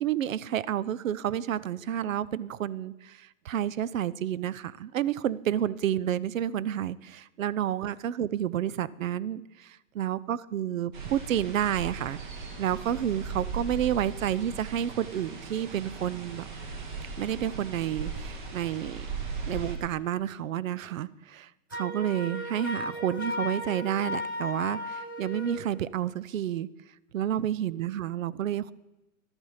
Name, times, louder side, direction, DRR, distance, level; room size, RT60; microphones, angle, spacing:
voice 1, 0.0-16.5 17.2-19.1 19.5-26.7 27.1-28.7, right 10 dB, 75° right, 19 dB, 0.6 m, -30 dB
sound 1, 10.9-19.8, right 4 dB, 35° right, 1.3 m, -38 dB
Wind instrument woodwind instrument, 21.7-25.6, left 1 dB, 15° left, 0.4 m, -35 dB
12.0 x 8.0 x 5.6 m, 1.0 s
hypercardioid pair, 175°, 40 cm